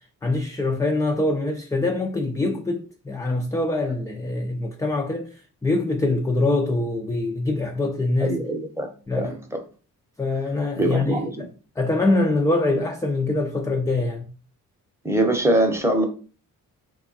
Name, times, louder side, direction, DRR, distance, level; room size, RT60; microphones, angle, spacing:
voice 1, 0.2-8.4 9.1-9.3 10.2-11.5 11.8-14.3, left 2 dB, 10° left, 0.4 m, -24 dB
voice 2, 8.2-8.9 9.2-9.6 10.8-11.5 15.0-16.0, right 1 dB, 10° right, 0.8 m, -23 dB
3.2 x 2.3 x 3.9 m
cardioid pair, 100°, 34 cm